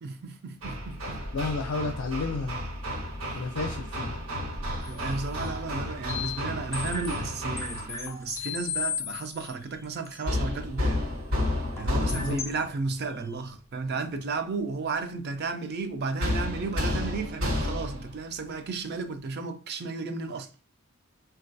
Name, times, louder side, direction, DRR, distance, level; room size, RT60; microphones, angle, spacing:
voice 1, 0.0-1.2 4.9-11.1 11.8-20.5, right 4 dB, 50° right, 0.4 m, -33 dB
Hammer, 0.6-8.0 10.3-12.7 16.2-18.1, left 1 dB, 75° right, 0.9 m, -31 dB
voice 2, 1.3-2.6 3.3-4.2 12.0-12.4, left 4 dB, 75° left, 0.5 m, -32 dB
sound 1, 4.8-6.4 6.7-9.5 9.8-10.4 11.8-12.6 12.9-13.0, left 7 dB, 15° left, 0.5 m, -36 dB
3.8 x 2.3 x 2.5 m
head